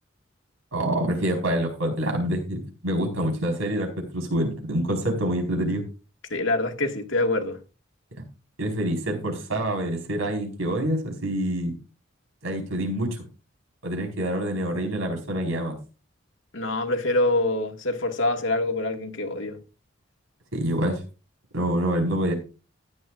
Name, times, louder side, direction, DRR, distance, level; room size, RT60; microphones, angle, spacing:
voice 1, 0.7-5.8 8.6-11.7 12.4-13.1 13.8-15.7 20.5-21.0 21.5-22.3, right 1 dB, 90° right, 4.6 m, -26 dB
voice 2, 6.3-7.6 16.5-19.6, left 2 dB, 70° left, 1.8 m, -25 dB
15.0 x 10.5 x 2.5 m
head